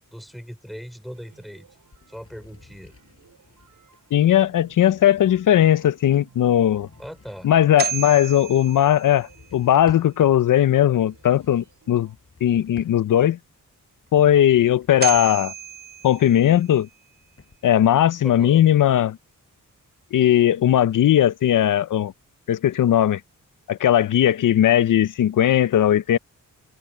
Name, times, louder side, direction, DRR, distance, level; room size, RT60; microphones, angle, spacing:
voice 1, 0.1-1.7 2.1-2.9 7.0-7.5 18.2-18.6, equal, ahead, 5.4 m, -39 dB
sound 1, 1.1-12.2, right 7 dB, 75° right, 5.7 m, -57 dB
sound 2, 1.8-10.2 11.0-13.4 13.9-17.6, left 4 dB, 45° left, 7.3 m, -52 dB
voice 2, 4.1-6.9 7.4-12.1 12.4-13.4 14.1-15.5 16.0-16.9 17.6-19.2 20.1-22.1 22.5-23.2 23.7-26.2, left 11 dB, 70° left, 0.6 m, -18 dB
sound 3, 7.6-9.7 14.6-14.7 15.0-16.9, right 9 dB, 30° right, 0.4 m, -32 dB
wide cardioid pair, 125°, 33 cm